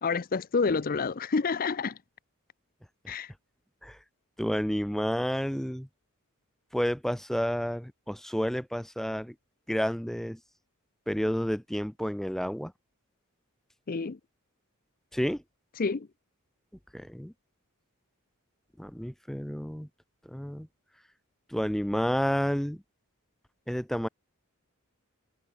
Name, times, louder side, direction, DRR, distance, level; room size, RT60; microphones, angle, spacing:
voice 1, 0.0-2.0 3.1-3.3 13.9-14.2 15.8-16.1, left 4 dB, 40° left, 0.6 m, -28 dB
voice 2, 4.4-5.9 6.7-9.3 9.7-10.4 11.1-12.7 15.1-15.4 16.9-17.3 18.8-19.9 20.3-20.7 21.5-22.8 23.7-24.1, equal, ahead, 0.8 m, -30 dB
head